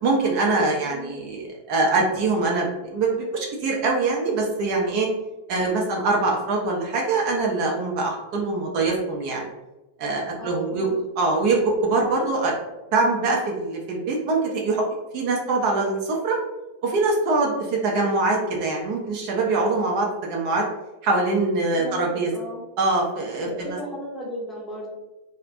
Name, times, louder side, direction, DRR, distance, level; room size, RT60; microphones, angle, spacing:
voice 1, 0.0-5.1 5.5-9.5 10.0-10.9 11.2-12.5 12.9-14.8 15.1-16.4 16.8-20.6 21.0-22.3 22.8-23.8, right 3 dB, 45° right, -1 dB, 0.4 m, -23 dB
voice 2, 0.8-1.1 10.4-11.0 21.7-22.6 23.4-24.9, equal, 5° left, -4 dB, 0.7 m, -35 dB
2.4 x 2.1 x 2.4 m, 1.0 s
figure-of-eight pair, 90°, 0 cm